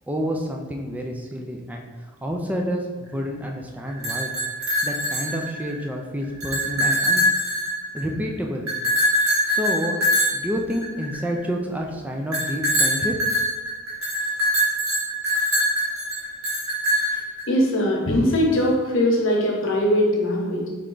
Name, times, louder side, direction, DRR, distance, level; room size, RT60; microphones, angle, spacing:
voice 1, 0.1-4.3 4.8-7.3 7.9-8.7 9.5-10.0 10.3-13.1, equal, 5° right, 1 dB, 0.3 m, -29 dB
sound 1, 3.9-5.8 6.2-8.2 8.7-11.4 12.3-17.4, equal, 85° right, 1.2 m, -23 dB
voice 2, 17.5-20.7, left 1 dB, 65° left, -1 dB, 0.9 m, -21 dB
3.3 x 3.1 x 3.8 m, 1.3 s
head